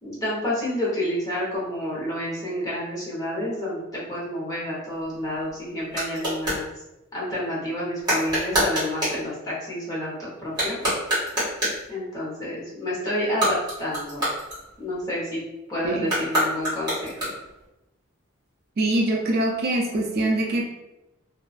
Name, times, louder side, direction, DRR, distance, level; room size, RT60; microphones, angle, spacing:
voice 1, 0.0-6.7 7.1-10.8 11.9-14.2 14.8-15.4 15.7-17.1, left 1 dB, 15° left, -7 dB, 0.8 m, -29 dB
sound 1, 4.9-6.7 8.0-9.2 10.4-11.9 13.2-15.1 16.0-17.6, equal, 20° right, 1.3 m, -27 dB
voice 2, 18.8-20.6, right 1 dB, 45° right, -1 dB, 0.3 m, -23 dB
2.5 x 2.2 x 2.3 m, 0.95 s
head